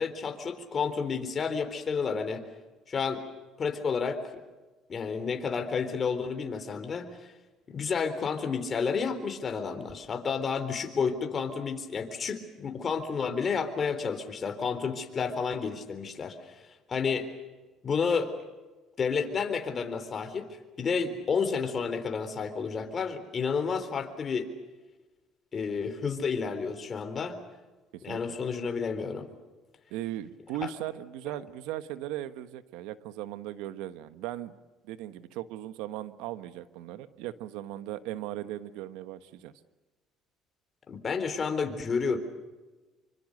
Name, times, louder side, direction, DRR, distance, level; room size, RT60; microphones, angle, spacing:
voice 1, 0.0-2.4 2.9-3.2 3.6-4.2 4.9-7.1 7.7-16.5 16.9-17.3 17.8-18.3 19.0-24.5 25.5-27.4 28.0-29.3 30.6-30.7 40.9-42.2, left 5 dB, 40° left, 8 dB, 3.9 m, -30 dB
voice 2, 29.9-34.5 34.8-39.5, right 13 dB, 85° right, 12 dB, 1.3 m, -38 dB
26.5 x 24.5 x 6.6 m, 1.2 s
cardioid pair, 95°, 0 cm